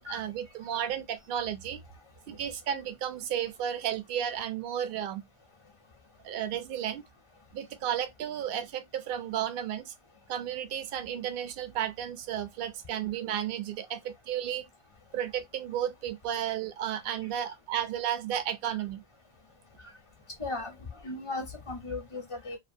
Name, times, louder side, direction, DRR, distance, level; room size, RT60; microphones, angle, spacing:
voice 1, 0.0-1.8 2.3-5.2 6.2-7.0 7.5-9.9 10.3-14.7 15.1-19.0, right 10 dB, 65° right, 0.7 m, -33 dB
voice 2, 20.4-20.7 21.0-22.6, left 3 dB, 30° left, 0.7 m, -36 dB
2.5 x 2.5 x 2.6 m
omnidirectional pair, 1.1 m